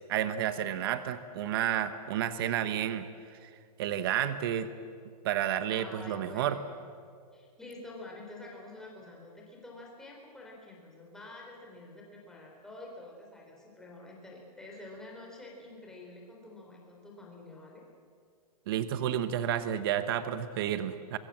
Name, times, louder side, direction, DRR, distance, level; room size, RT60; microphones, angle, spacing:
voice 1, 0.1-3.5 3.8-4.7 5.2-6.6 18.7-21.2, right 10 dB, 35° right, 12 dB, 1.0 m, -31 dB
voice 2, 5.7-6.8 7.3-17.8, left 2 dB, 5° left, -2 dB, 3.7 m, -48 dB
29.0 x 23.0 x 7.5 m, 2.2 s
hypercardioid pair, 170°, 21 cm